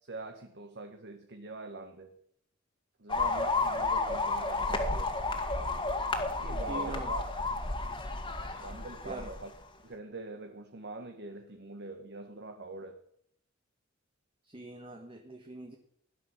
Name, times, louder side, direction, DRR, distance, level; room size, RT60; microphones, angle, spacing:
voice 1, 0.0-2.2 3.0-5.2 6.4-7.5 8.6-9.5 9.8-13.0, right 3 dB, 55° right, 6 dB, 1.4 m, -43 dB
sound 1, 3.1-9.5, left 3 dB, 25° left, 1.9 m, -32 dB
voice 2, 6.7-7.1 9.0-9.3 14.5-15.8, right 2 dB, 25° right, 4 dB, 1.5 m, -42 dB
16.5 x 11.0 x 7.3 m, 0.71 s
head